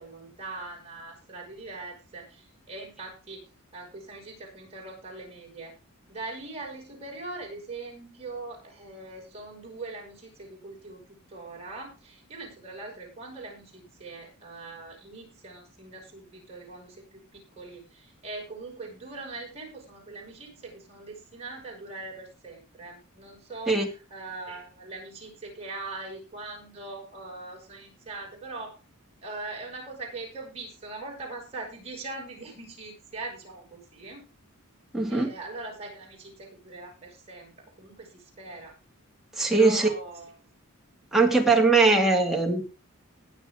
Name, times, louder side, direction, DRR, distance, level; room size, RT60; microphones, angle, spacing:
voice 1, 0.0-3.4 3.7-5.8 6.1-11.0 11.3-28.8 29.2-34.3 35.1-37.5 37.8-38.8 39.5-40.3, right 3 dB, 30° right, -2 dB, 5.9 m, -41 dB
voice 2, 34.9-35.3 39.4-39.9 41.1-42.6, right 3 dB, ahead, 0 dB, 2.3 m, -21 dB
20.0 x 7.1 x 3.7 m, 0.32 s
head